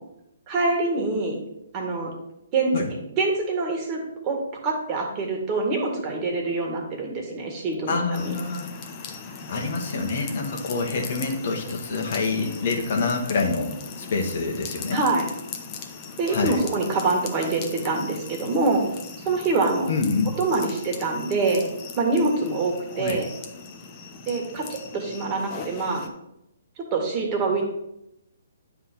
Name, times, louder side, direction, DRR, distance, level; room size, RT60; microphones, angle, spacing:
voice 1, 0.5-1.4 1.7-2.1 2.5-2.7 3.2-4.0 4.2-8.3 14.9-15.2 16.2-18.8 19.2-19.9 20.4-21.6 22.0-23.3 24.3-26.0 26.9-27.6, right 3 dB, 25° right, 0 dB, 1.9 m, -25 dB
voice 2, 7.9-8.7 9.5-15.0 16.3-16.6 19.9-20.3 22.9-23.2, left 4 dB, 55° left, 2 dB, 1.5 m, -26 dB
sound 1, 8.1-26.1, left 5 dB, 30° left, 1.0 m, -39 dB
9.7 x 3.7 x 5.8 m, 0.84 s
figure-of-eight pair, 135°, 0 cm